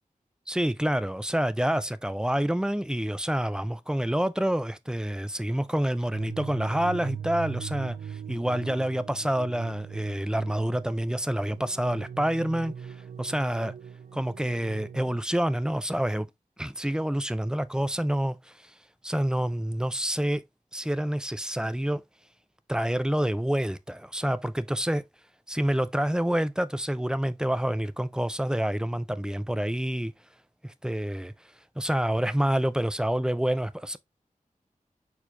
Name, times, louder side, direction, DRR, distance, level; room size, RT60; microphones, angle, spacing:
voice 1, 0.5-13.7 14.1-16.3 16.6-18.7 19.0-20.4 20.7-22.0 22.7-25.0 25.5-30.1 30.6-31.3 31.8-34.0, right 1 dB, 5° right, 0.4 m, -28 dB
sound 1, 6.1-15.2, right 8 dB, 75° right, 0.4 m, -40 dB
4.5 x 4.4 x 2.6 m
wide cardioid pair, 80°, 14 cm